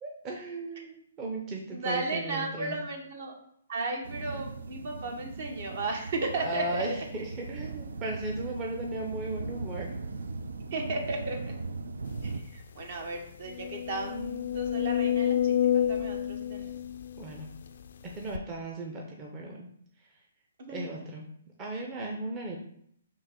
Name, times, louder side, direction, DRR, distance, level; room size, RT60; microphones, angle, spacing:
voice 1, 0.0-2.8 6.4-9.9 17.2-17.5 18.0-19.7 20.7-21.3 21.6-22.6, right 2 dB, 25° right, -1 dB, 0.6 m, -36 dB
voice 2, 1.7-3.3 3.7-6.8 10.7-11.4 12.2-16.7 20.6-20.9, right 2 dB, 55° right, 2 dB, 0.9 m, -35 dB
sound 1, 4.0-12.4, right 3 dB, 80° right, 0.3 m, -39 dB
sound 2, 12.3-12.4 12.8-12.9 13.4-17.7 18.3-18.4, left 10 dB, 65° left, 0.3 m, -29 dB
3.7 x 2.6 x 4.3 m, 0.69 s
hypercardioid pair, 140°, 0 cm